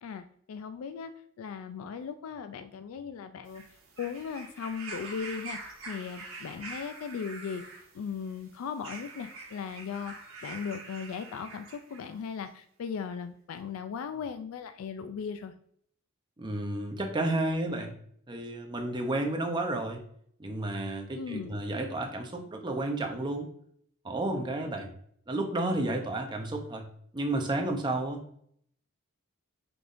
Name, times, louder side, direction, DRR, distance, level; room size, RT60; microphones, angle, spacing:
voice 1, 0.0-1.1 1.4-3.6 4.0-5.6 5.8-7.6 7.9-10.1 10.4-15.5 21.1-21.6, left 6 dB, 80° left, 9 dB, 0.3 m, -37 dB
sound 1, 3.4-12.1 13.0-13.1, right 3 dB, 75° right, 1.3 m, -45 dB
voice 2, 16.4-18.0 18.3-20.0 20.4-23.5 24.0-24.9 25.3-26.9 27.1-28.2, right 2 dB, 20° right, 3 dB, 0.7 m, -31 dB
5.9 x 3.5 x 2.5 m, 0.65 s
head